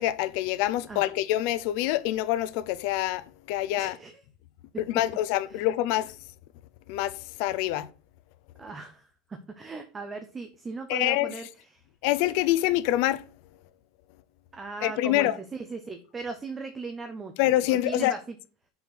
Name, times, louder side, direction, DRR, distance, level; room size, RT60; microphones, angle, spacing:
voice 1, 0.0-4.0 4.9-6.1 6.9-7.9 10.9-11.3 12.0-13.2 14.8-15.3 17.4-18.1, left 15 dB, 60° left, 0.6 m, -26 dB
voice 2, 3.8-4.2 5.5-5.7 8.6-11.8 14.5-17.3 17.7-18.4, right 4 dB, 15° right, 0.7 m, -38 dB
5.7 x 4.3 x 5.9 m
supercardioid pair, 150°, 0 cm